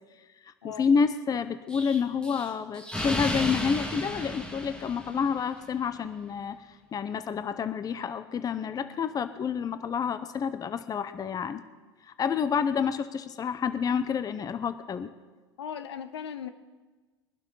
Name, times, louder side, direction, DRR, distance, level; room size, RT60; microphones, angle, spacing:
voice 1, 0.5-6.6 6.9-11.6 12.0-15.1, left 6 dB, 25° left, 12 dB, 0.8 m, -29 dB
Explosion, 1.7-5.5, left 1 dB, 5° left, 2.0 m, -34 dB
voice 2, 15.6-16.5, left 8 dB, 75° left, 11 dB, 1.0 m, -37 dB
22.5 x 11.5 x 4.0 m, 1.3 s
figure-of-eight pair, 80°, 14 cm